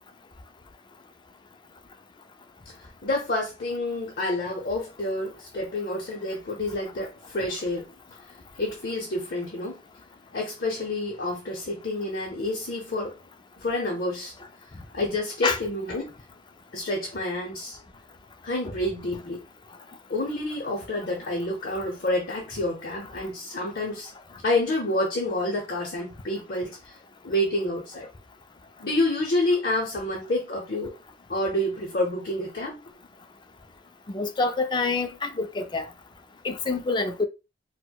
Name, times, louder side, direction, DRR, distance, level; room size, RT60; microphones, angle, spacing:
voice 1, 2.7-7.9 8.6-9.8 10.3-13.1 13.6-14.3 14.9-16.1 16.7-17.8 18.4-19.4 20.1-24.1 24.4-27.0 27.2-28.1 28.8-30.9 31.3-32.8, left 1 dB, 50° left, 0.7 m, -28 dB
voice 2, 34.1-35.9 36.4-37.2, left 3 dB, 25° left, 0.4 m, -26 dB
4.4 x 2.1 x 2.2 m
head